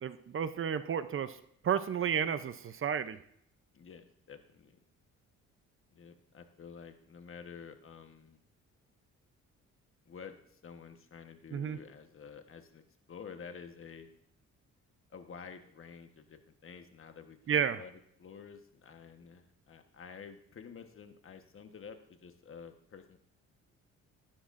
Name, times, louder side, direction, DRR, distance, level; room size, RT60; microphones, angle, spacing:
voice 1, 0.0-1.4 1.6-3.2 11.5-11.8 17.5-17.8, right 8 dB, 45° right, 12 dB, 0.7 m, -32 dB
voice 2, 3.7-4.8 5.9-8.4 10.0-12.8 13.1-14.1 15.1-17.9 18.2-23.2, left 6 dB, 45° left, 7 dB, 1.3 m, -50 dB
14.5 x 12.0 x 2.6 m, 0.67 s
cardioid pair, 90°, 30 cm